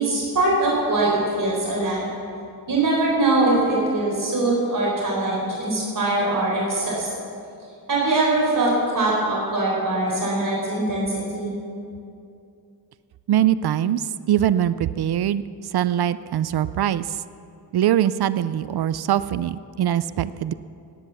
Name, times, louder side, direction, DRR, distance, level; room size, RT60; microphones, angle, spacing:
voice 1, 0.0-2.1 2.7-7.1 7.9-11.5, right 2 dB, 55° right, -4 dB, 4.3 m, -22 dB
voice 2, 13.3-15.4 15.7-17.2 17.7-20.5, right 11 dB, 70° right, 15 dB, 0.5 m, -22 dB
18.0 x 10.0 x 7.1 m, 2.5 s
wide cardioid pair, 125°, 39 cm